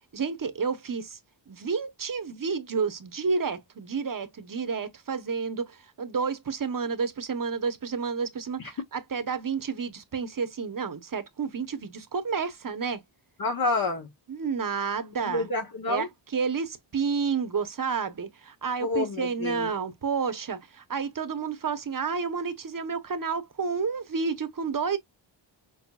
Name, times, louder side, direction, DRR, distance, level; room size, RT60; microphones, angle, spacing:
voice 1, 0.1-1.2 1.5-13.0 14.3-15.5 15.9-16.1 16.3-25.0, right 5 dB, 45° right, 0.9 m, -30 dB
voice 2, 13.4-14.1 15.2-16.1 18.8-19.7, left 3 dB, 50° left, 1.0 m, -28 dB
6.4 x 2.9 x 2.3 m
wide cardioid pair, 125°, 45 cm